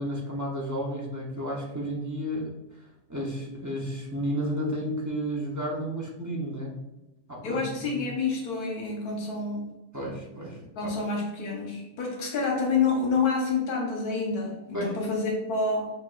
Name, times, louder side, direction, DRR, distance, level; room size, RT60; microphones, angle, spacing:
voice 1, 0.0-2.5 3.1-6.7 7.3-8.0 9.9-10.7 14.7-14.9, equal, 20° right, -4 dB, 0.4 m, -32 dB
voice 2, 7.4-9.7 10.7-15.9, left 4 dB, 85° left, -1 dB, 1.4 m, -28 dB
7.3 x 2.5 x 2.3 m, 0.98 s
omnidirectional pair, 1.6 m